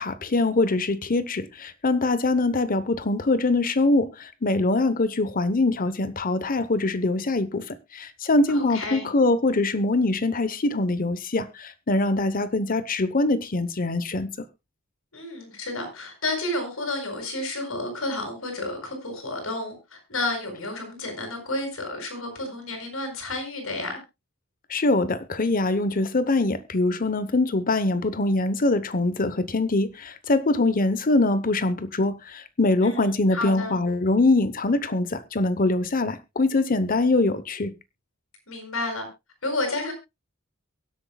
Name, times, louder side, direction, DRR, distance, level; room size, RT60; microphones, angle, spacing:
voice 1, 0.0-14.3 24.7-37.7, left 2 dB, 45° left, 0.9 m, -23 dB
voice 2, 8.5-9.1 15.1-24.0 32.8-33.8 38.5-39.1 39.4-39.9, left 2 dB, 75° left, 6.5 m, -31 dB
23.0 x 8.2 x 2.3 m
head